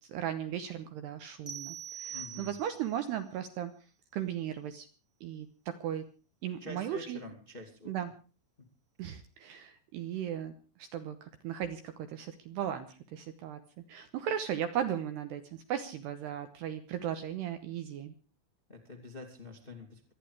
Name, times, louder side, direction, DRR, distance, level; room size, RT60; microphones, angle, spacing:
voice 1, 0.0-3.7 4.1-4.9 5.2-6.1 6.4-7.2 7.9-8.1 9.0-10.5 10.8-13.6 13.9-18.1, right 10 dB, 75° right, 9 dB, 2.7 m, -36 dB
sound 1, 1.5-3.0, right 8 dB, 5° right, 2.4 m, -43 dB
voice 2, 2.1-2.5 6.6-7.9 8.6-8.7 18.7-20.1, left 2 dB, 20° left, 2 dB, 1.7 m, -47 dB
25.5 x 10.0 x 4.9 m, 0.36 s
omnidirectional pair, 5.8 m